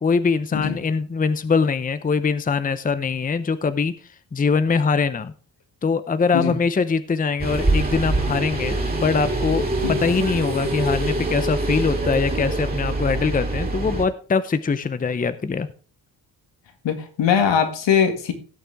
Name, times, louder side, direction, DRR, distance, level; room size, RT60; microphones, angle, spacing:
voice 1, 0.0-3.9 4.3-5.3 5.8-15.7, left 5 dB, 20° left, 13 dB, 0.7 m, -22 dB
sound 1, 7.4-14.0, right 2 dB, 20° right, 3.0 m, -24 dB
voice 2, 16.8-18.3, left 7 dB, 80° left, 6 dB, 2.2 m, -21 dB
16.5 x 6.6 x 3.5 m, 0.39 s
cardioid pair, 110°, 43 cm